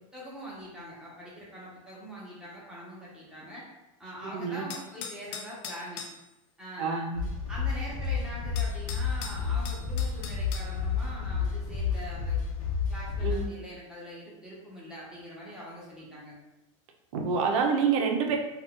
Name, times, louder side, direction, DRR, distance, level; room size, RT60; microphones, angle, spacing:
voice 1, 0.0-3.6 4.0-6.0 6.6-7.0 7.5-12.4 12.9-16.3, equal, 5° right, -7 dB, 0.8 m, -43 dB
voice 2, 4.3-4.6 6.8-7.3 13.2-13.5 17.1-18.4, right 5 dB, 65° right, 3 dB, 0.6 m, -27 dB
sound 1, 4.7-6.2 8.0-8.1 8.6-10.7, left 6 dB, 55° left, 0.4 m, -40 dB
sound 2, 7.2-13.5, left 5 dB, 80° left, 0.8 m, -30 dB
2.4 x 2.4 x 3.6 m, 0.96 s
supercardioid pair, 145°, 18 cm